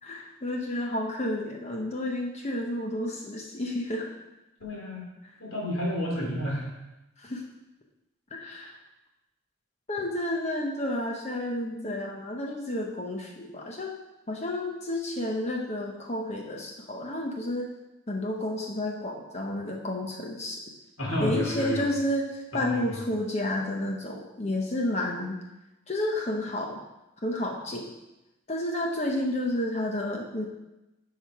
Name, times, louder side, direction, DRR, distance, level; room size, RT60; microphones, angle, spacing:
voice 1, 0.0-4.1 7.2-7.4 8.3-8.8 9.9-14.0 14.3-17.7 18.1-20.6 21.2-25.4 25.9-26.8 27.2-27.9 28.5-30.5, left 1 dB, 35° left, 1 dB, 0.9 m, -31 dB
voice 2, 4.6-5.1 5.4-6.7 21.0-21.9 22.5-23.0, equal, 85° left, -1 dB, 2.7 m, -30 dB
10.5 x 5.8 x 4.7 m, 0.98 s
head